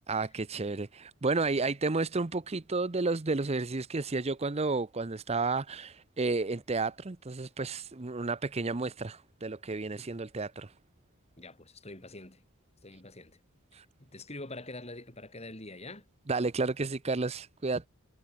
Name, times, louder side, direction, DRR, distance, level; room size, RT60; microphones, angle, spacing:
voice 1, 0.1-10.7 13.7-13.8 16.3-17.9, right 3 dB, 30° right, 0.7 m, -31 dB
voice 2, 11.4-12.4 12.8-13.4 14.0-16.1, left 2 dB, 30° left, 5.1 m, -45 dB
head